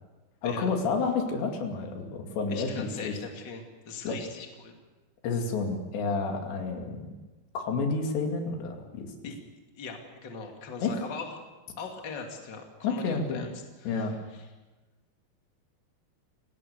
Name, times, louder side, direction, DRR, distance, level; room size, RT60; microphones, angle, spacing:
voice 1, 0.4-3.1 4.0-4.2 5.2-7.1 7.5-9.1 10.8-10.9 12.8-13.5 13.9-14.1, left 4 dB, 80° left, 3 dB, 4.7 m, -30 dB
voice 2, 2.5-4.7 9.2-9.4 9.8-11.4 11.8-13.5 13.8-14.5, left 5 dB, 30° left, 2 dB, 2.6 m, -40 dB
28.5 x 18.0 x 6.8 m, 1.2 s
omnidirectional pair, 5.0 m